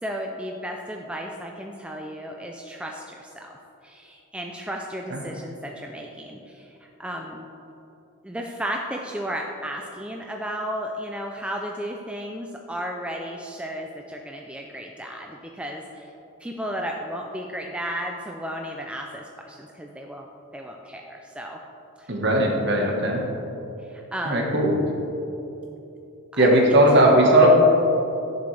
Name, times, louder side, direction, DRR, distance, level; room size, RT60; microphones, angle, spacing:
voice 1, 0.0-3.6 3.8-7.5 8.2-16.1 16.4-21.6 22.0-22.1 23.8-24.5 26.3-26.6, equal, 5° right, 1 dB, 0.3 m, -34 dB
voice 2, 22.1-23.2 24.2-24.7 26.4-27.5, right 1 dB, 50° right, 0 dB, 1.3 m, -18 dB
11.5 x 6.9 x 3.3 m, 3.0 s
head